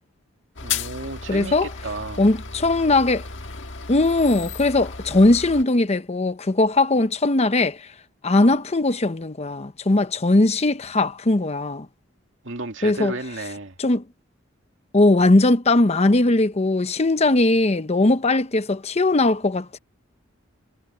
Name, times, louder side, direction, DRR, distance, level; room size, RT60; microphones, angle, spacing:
sound 1, 0.6-5.6, left 6 dB, 70° left, 1.7 m, -34 dB
voice 1, 0.6-2.2 12.4-13.8, right 2 dB, 75° right, 2.3 m, -33 dB
voice 2, 1.3-1.7 2.2-3.2 3.9-7.9 8.2-11.9 12.8-13.1 13.8-14.0 14.9-19.8, left 2 dB, 35° left, 0.8 m, -19 dB
head